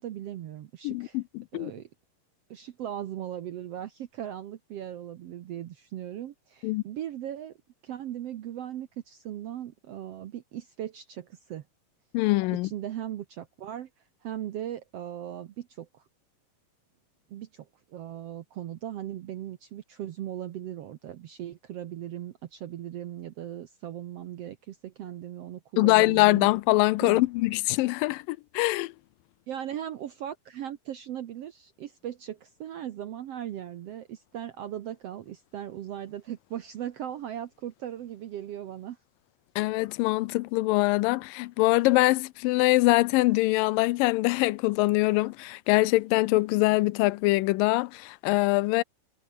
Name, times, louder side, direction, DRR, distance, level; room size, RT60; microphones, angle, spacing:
voice 1, 0.0-1.2 1.5-1.9 2.5-7.6 7.8-11.6 12.6-13.9 14.2-16.0 17.3-26.5 27.0-27.2 29.5-39.0, right 11 dB, 70° right, 1.5 m, -38 dB
voice 2, 0.8-1.7 6.6-6.8 12.1-12.7 25.8-28.9 39.6-48.8, left 20 dB, 85° left, 2.3 m, -23 dB
omnidirectional pair, 3.9 m